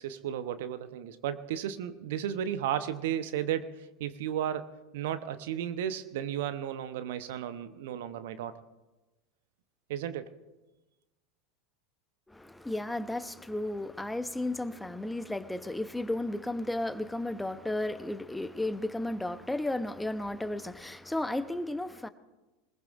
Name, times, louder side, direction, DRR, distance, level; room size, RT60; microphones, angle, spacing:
voice 1, 0.0-8.6 9.9-10.3, right 10 dB, 65° right, 12 dB, 0.8 m, -34 dB
voice 2, 12.3-22.1, left 1 dB, 5° left, 12 dB, 0.7 m, -34 dB
22.0 x 20.5 x 2.5 m, 1.1 s
figure-of-eight pair, 85°, 0 cm